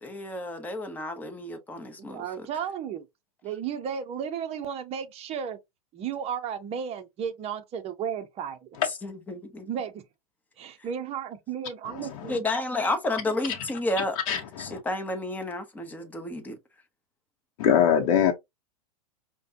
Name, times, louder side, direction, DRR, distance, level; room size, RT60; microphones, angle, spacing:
voice 1, 0.0-2.5 9.0-9.7 12.3-14.2 14.6-16.6, left 2 dB, 10° left, 0.8 m, -31 dB
voice 2, 2.0-3.1 3.4-5.6 5.9-8.7 9.7-10.0 10.6-12.4 16.0-16.1, right 8 dB, 30° right, 0.7 m, -34 dB
voice 3, 12.0-12.3 14.3-14.8 17.6-18.3, left 9 dB, 60° left, 0.8 m, -23 dB
5.0 x 2.2 x 2.7 m
hypercardioid pair, 110°, 20 cm